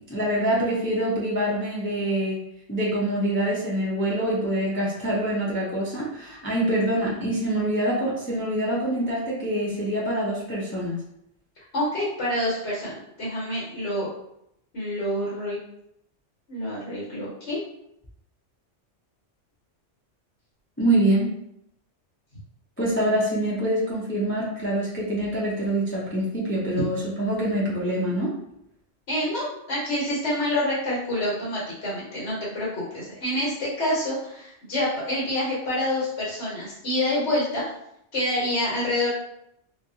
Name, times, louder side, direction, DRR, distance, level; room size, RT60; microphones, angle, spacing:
voice 1, 0.1-2.4 2.7-11.0 20.8-21.3 22.8-28.3, right 1 dB, 15° left, -6 dB, 0.4 m, -25 dB
voice 2, 11.7-14.1 14.7-15.6 16.5-17.6 29.1-37.6 38.1-39.1, left 1 dB, 70° left, -8 dB, 1.4 m, -27 dB
2.9 x 2.7 x 2.7 m, 0.78 s
omnidirectional pair, 1.2 m